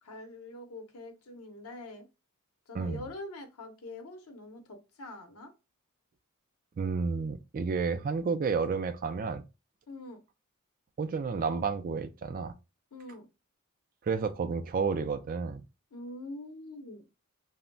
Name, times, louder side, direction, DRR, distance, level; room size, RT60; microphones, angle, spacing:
voice 1, 0.0-2.1 2.7-5.5 9.9-10.2 12.9-13.3 15.9-17.0, left 2 dB, 80° left, 0.7 m, -44 dB
voice 2, 2.7-3.1 6.8-9.4 11.0-12.5 14.0-15.6, right 5 dB, 40° right, 0.3 m, -31 dB
2.2 x 2.1 x 3.8 m
head